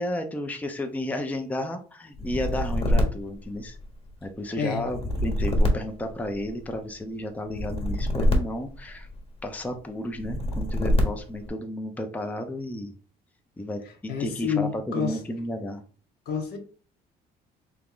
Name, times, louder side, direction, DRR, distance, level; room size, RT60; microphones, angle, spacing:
voice 1, 0.0-3.8 4.2-9.1 9.4-12.9 13.6-15.8, left 1 dB, 10° left, 0.5 m, -32 dB
sound 1, 2.1-4.1 4.8-6.8 7.5-9.4 10.1-11.5, left 1 dB, 35° left, 1.1 m, -26 dB
voice 2, 4.6-4.9 13.8-15.2 16.3-16.6, left 6 dB, 70° left, 1.0 m, -29 dB
3.5 x 2.9 x 3.8 m
cardioid pair, 110°, 17 cm